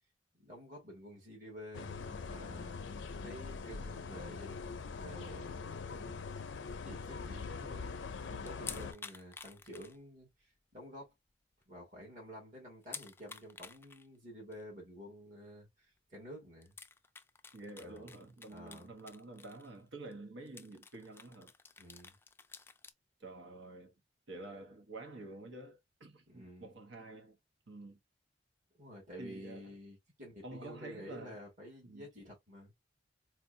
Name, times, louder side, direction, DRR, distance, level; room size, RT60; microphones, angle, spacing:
voice 1, 0.4-4.6 4.9-6.1 6.8-8.0 8.3-11.1 11.7-16.7 17.8-18.1 18.5-18.9 21.8-22.2 26.3-26.7 28.8-32.7, equal, 45° right, 1.9 m, -51 dB
sound 1, 1.7-8.9, left 4 dB, 80° left, 0.5 m, -43 dB
sound 2, 8.4-10.4 10.7-10.8 11.3-11.4 11.6-11.7 12.8-14.1 14.5-14.6 16.0-16.1 16.6-19.8 20.1-20.2 20.5-22.9, left 5 dB, 15° left, 0.3 m, -50 dB
voice 2, 17.5-21.5 23.2-23.9 24.3-27.4 27.7-28.0 29.2-29.7 30.4-31.4 31.8-32.1, right 2 dB, 80° right, 1.1 m, -49 dB
4.3 x 2.3 x 2.6 m
head